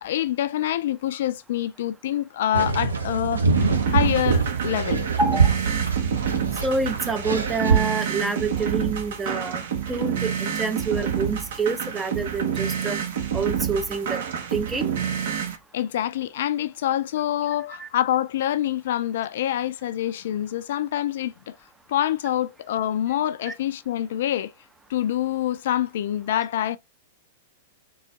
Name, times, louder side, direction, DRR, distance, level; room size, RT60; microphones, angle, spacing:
voice 1, 0.0-3.5 3.9-5.0 15.7-21.6 21.9-24.5 24.9-26.8, left 11 dB, 55° left, 0.4 m, -26 dB
sound 1, 2.5-7.8, right 5 dB, 75° right, 1.0 m, -24 dB
sound 2, 3.6-15.6, right 8 dB, 55° right, 1.1 m, -28 dB
voice 2, 5.2-5.5 6.6-13.0 13.3-14.2 14.5-14.9 17.8-17.9 23.5-23.6, right 3 dB, 10° right, 0.6 m, -27 dB
3.9 x 3.4 x 3.4 m
figure-of-eight pair, 100°, 0 cm